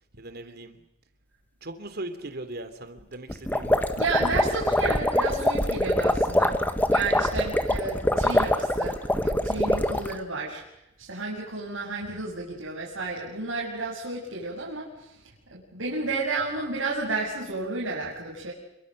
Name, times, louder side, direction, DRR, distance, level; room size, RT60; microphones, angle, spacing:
voice 1, 0.2-0.8 1.6-3.9, right 2 dB, 55° right, 9 dB, 3.3 m, -39 dB
sound 1, 3.3-10.1, left 1 dB, 10° left, 1.6 m, -24 dB
voice 2, 4.0-6.6 6.9-9.0 9.2-10.6 11.0-15.1 15.5-18.5, right 3 dB, 80° right, -4 dB, 7.0 m, -31 dB
29.0 x 24.0 x 6.7 m, 0.87 s
head